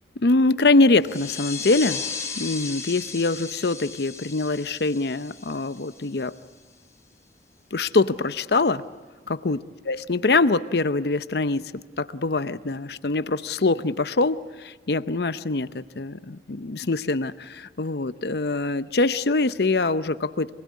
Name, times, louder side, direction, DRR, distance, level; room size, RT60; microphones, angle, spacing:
voice 1, 0.2-2.0 2.4-6.4 7.7-8.9 9.3-9.6 9.9-20.6, left 3 dB, 65° left, 13 dB, 0.7 m, -24 dB
sound 1, 1.0-6.4, left 5 dB, 15° left, 3.4 m, -36 dB
26.0 x 20.5 x 9.5 m, 1.4 s
head